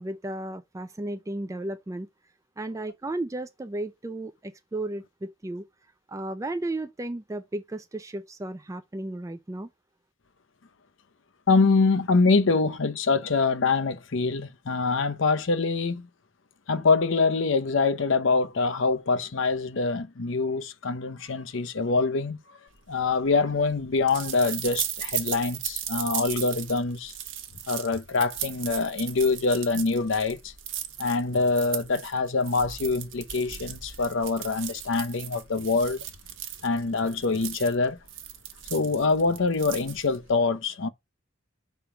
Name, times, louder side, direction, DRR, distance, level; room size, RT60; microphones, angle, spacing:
voice 1, 0.0-2.1 2.6-5.6 6.1-9.7, right 1 dB, 15° right, 0.3 m, -34 dB
voice 2, 11.5-16.1 16.7-22.4 22.9-27.1 27.7-30.5 31.0-36.0 36.6-38.0 38.7-40.9, left 4 dB, 65° left, 0.6 m, -25 dB
sound 1, 22.9-40.3, right 10 dB, 65° right, 1.1 m, -37 dB
5.7 x 3.6 x 4.9 m
head